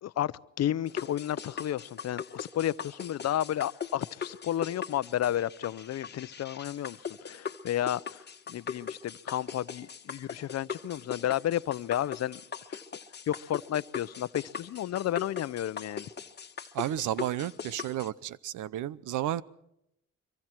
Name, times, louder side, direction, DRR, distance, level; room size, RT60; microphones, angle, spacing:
voice 1, 0.0-8.2 8.5-12.4 12.7-12.8 13.3-16.1, left 12 dB, 60° left, 0.7 m, -32 dB
sound 1, 0.9-18.1, left 7 dB, 35° left, 1.4 m, -40 dB
voice 2, 16.7-19.4, right 12 dB, 80° right, 0.8 m, -32 dB
25.0 x 23.5 x 4.6 m
cardioid pair, 90°, 30 cm